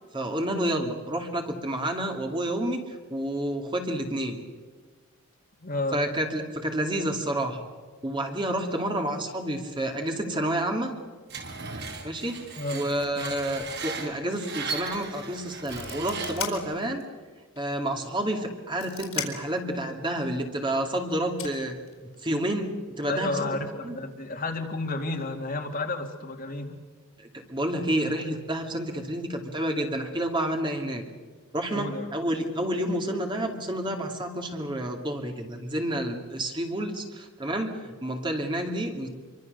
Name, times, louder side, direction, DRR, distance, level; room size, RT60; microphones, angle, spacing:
voice 1, 0.1-4.4 5.9-7.7 8.0-10.9 12.0-12.4 12.7-17.0 17.6-21.8 22.2-22.7 23.0-23.5 23.8-24.0 27.2-31.0 31.5-39.1, right 1 dB, 20° right, 3 dB, 2.5 m, -29 dB
voice 2, 5.6-6.0 12.6-12.8 13.2-13.3 23.1-26.8 31.7-32.1, left 2 dB, 40° left, 3 dB, 2.5 m, -31 dB
Screech, 11.3-16.6, right 4 dB, 50° right, 4.2 m, -37 dB
sound 1, 14.8-15.0 15.3-17.1 17.6-17.7 18.4-19.6 20.8-20.9 21.4-22.4, left 10 dB, 70° left, 4.3 m, -37 dB
27.0 x 24.0 x 6.7 m, 1.4 s
head